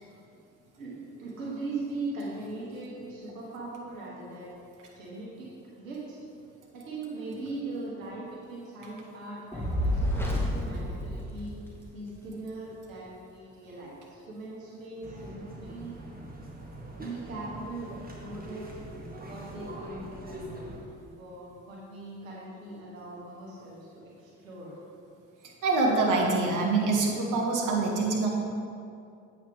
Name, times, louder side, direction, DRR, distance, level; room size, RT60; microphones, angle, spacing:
voice 1, 0.8-4.5 4.9-5.5 5.8-6.2 6.7-11.5 11.9-16.0 17.0-18.8 19.3-20.9 21.2-24.7, right 2 dB, 90° right, -5 dB, 1.3 m, -40 dB
Fire, 9.5-12.0, equal, 5° left, 1.7 m, -29 dB
sound 1, 15.0-20.8, right 1 dB, 25° right, 1.8 m, -43 dB
voice 2, 25.6-28.3, right 3 dB, 50° right, -1 dB, 1.4 m, -25 dB
8.2 x 6.3 x 3.5 m, 2.5 s
hypercardioid pair, 50°, 38 cm